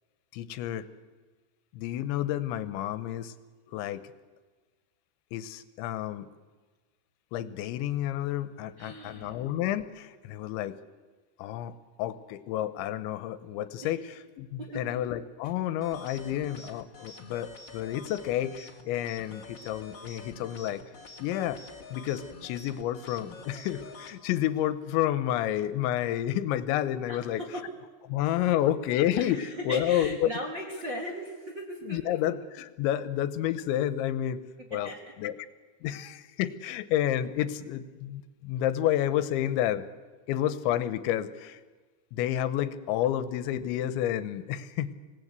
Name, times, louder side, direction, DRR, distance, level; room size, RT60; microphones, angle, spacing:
voice 1, 0.3-0.9 1.7-3.3 3.7-4.0 5.3-6.3 7.3-10.8 11.4-20.8 21.2-21.6 21.9-27.4 28.1-30.3 31.9-34.4 34.7-34.9 35.2-35.4 35.8-39.9 40.3-41.6 42.1-44.9, left 12 dB, 80° left, 13 dB, 3.1 m, -30 dB
voice 2, 8.8-9.4 13.8-13.9 14.6-15.0 15.4-15.5 27.1-27.7 29.2-32.2 34.6-35.1, equal, 40° right, -1 dB, 1.8 m, -38 dB
sound 1, 15.8-24.1, left 3 dB, 50° left, 1.4 m, -47 dB
26.0 x 18.0 x 8.1 m, 1.4 s
omnidirectional pair, 5.3 m